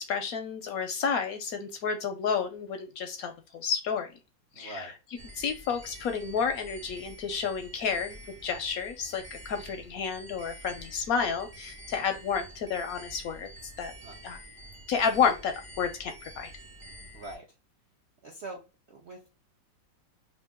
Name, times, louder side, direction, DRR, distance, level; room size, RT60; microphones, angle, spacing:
voice 1, 0.0-4.1 4.6-4.9 5.4-13.5 13.8-13.9 14.2-14.4 14.9-16.5, left 6 dB, 70° left, 6 dB, 0.9 m, -31 dB
voice 2, 4.5-4.9 14.0-14.2 17.1-17.5 18.2-18.6 18.9-19.3, right 2 dB, 65° right, 0 dB, 0.6 m, -43 dB
sound 1, 5.2-17.4, equal, 25° right, 0.7 m, -48 dB
3.7 x 2.6 x 3.5 m, 0.29 s
omnidirectional pair, 2.0 m